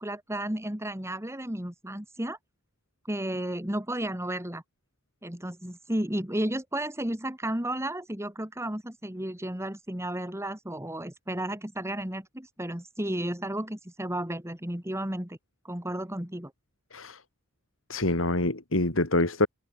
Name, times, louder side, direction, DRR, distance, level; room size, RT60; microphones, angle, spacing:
voice 1, 0.0-2.4 3.1-4.6 5.2-15.4 15.6-16.5, right 1 dB, 15° right, 2.9 m, -33 dB
voice 2, 17.9-19.5, left 2 dB, 80° left, 3.1 m, -26 dB
head